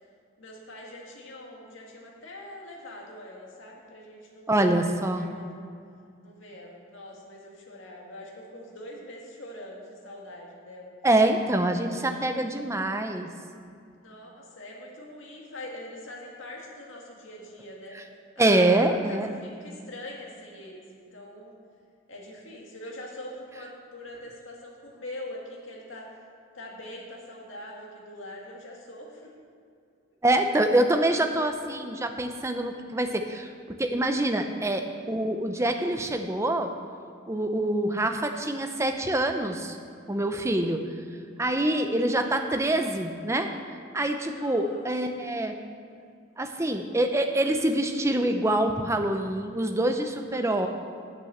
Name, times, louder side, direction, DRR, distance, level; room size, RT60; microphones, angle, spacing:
voice 1, 0.4-5.6 6.2-10.9 11.6-12.0 13.9-18.0 18.4-21.6 22.1-26.2 26.5-29.3 30.1-30.2 44.3-44.9 50.3-50.7, left 1 dB, 70° left, -2 dB, 1.9 m, -43 dB
voice 2, 4.5-5.3 11.0-13.3 17.9-18.0 18.4-19.3 30.2-36.7 37.3-39.8 40.1-40.8 41.4-43.5 43.9-45.6 46.4-50.7, right 1 dB, 15° right, 6 dB, 0.6 m, -25 dB
9.0 x 6.5 x 7.1 m, 2.3 s
head